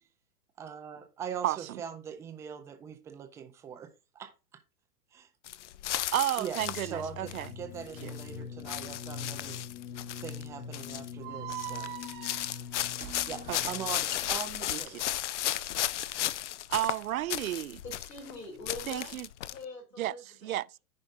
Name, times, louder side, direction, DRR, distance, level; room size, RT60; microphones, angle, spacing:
voice 1, 0.6-4.6 5.1-5.3 6.4-9.6 10.2-11.9 13.2-15.3, right 8 dB, 5° right, 0.4 m, -42 dB
voice 2, 1.4-1.8 6.1-7.5 8.0-8.1 13.5-13.6 14.7-15.0 16.7-17.8 18.9-19.3 20.0-20.1 20.4-20.7, right 14 dB, 60° right, 0.5 m, -32 dB
sound 1, 5.5-7.5 7.9-8.3 8.6-10.5 10.7-11.1 11.5-18.4 18.6-19.6, left 13 dB, 50° left, 0.5 m, -35 dB
sound 2, 6.6-14.3, left 7 dB, 30° left, 1.1 m, -44 dB
sound 3, 11.2-14.4, right 13 dB, 25° right, 0.9 m, -43 dB
voice 3, 17.8-19.2 19.5-20.6, left 2 dB, 85° left, 4.4 m, -44 dB
14.0 x 5.2 x 2.6 m
figure-of-eight pair, 110°, 48 cm